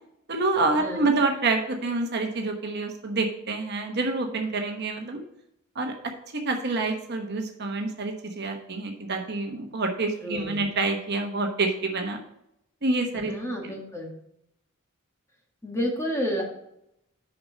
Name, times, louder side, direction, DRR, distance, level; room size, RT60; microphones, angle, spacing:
voice 1, 0.3-5.2 5.7-12.2 12.8-13.3, right 3 dB, 50° right, 3 dB, 1.1 m, -27 dB
voice 2, 0.8-1.1 10.2-10.7 13.1-14.1 15.6-16.4, equal, 15° left, -1 dB, 1.6 m, -30 dB
6.7 x 5.3 x 6.4 m, 0.79 s
head